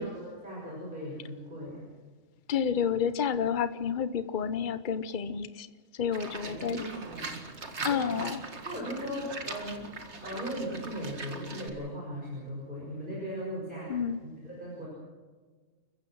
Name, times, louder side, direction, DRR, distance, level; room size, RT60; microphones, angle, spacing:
voice 1, 0.0-1.9 6.2-7.4 7.9-8.2 8.6-9.9 10.2-14.0 14.4-14.9, equal, 40° right, -5 dB, 6.5 m, -38 dB
voice 2, 2.5-5.7 6.0-6.8 7.8-8.4 13.9-14.2, left 7 dB, 45° left, 13 dB, 1.0 m, -30 dB
Livestock farm animals working animals, 6.1-11.7, right 3 dB, 65° right, 2.2 m, -40 dB
29.5 x 15.5 x 6.3 m, 1.4 s
omnidirectional pair, 1.3 m